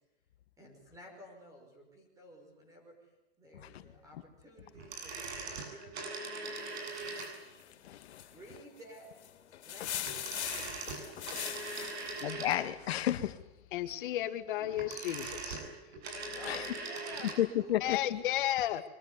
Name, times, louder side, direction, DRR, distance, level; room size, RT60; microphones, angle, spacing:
voice 1, 0.6-3.1 3.4-6.8 8.2-9.1 9.6-10.9 16.3-17.3 17.6-18.1, equal, 10° right, 2 dB, 5.6 m, -53 dB
sound 1, 4.8-7.6 10.0-12.9 14.6-17.4 17.7-17.8, right 3 dB, 75° right, 7.8 m, -41 dB
sound 2, 6.4-12.2, left 11 dB, 85° left, 3.4 m, -42 dB
voice 2, 7.8-8.2 9.8-9.9 11.3-11.5 12.2-13.4 16.4-16.6 17.4-18.2, left 12 dB, 70° left, 12 dB, 1.9 m, -32 dB
voice 3, 13.7-15.6 17.8-18.8, left 13 dB, 50° left, 10 dB, 1.9 m, -33 dB
24.0 x 21.0 x 9.8 m, 0.94 s
supercardioid pair, 175°, 33 cm